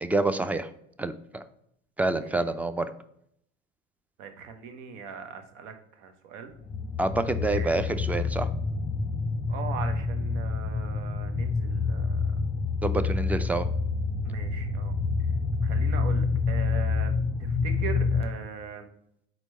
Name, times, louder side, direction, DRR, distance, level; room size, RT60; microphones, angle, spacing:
voice 1, 0.0-0.7 1.0-1.4 2.0-2.9 7.0-8.5 12.8-13.7, right 2 dB, 5° right, 11 dB, 0.3 m, -27 dB
voice 2, 4.2-6.5 7.5-7.7 9.5-12.2 14.2-15.3 15.6-17.1 17.4-18.9, right 6 dB, 70° right, 7 dB, 1.1 m, -40 dB
sound 1, 6.6-18.2, left 4 dB, 15° left, 0.8 m, -28 dB
4.5 x 4.0 x 5.3 m, 0.72 s
hypercardioid pair, 75°, 36 cm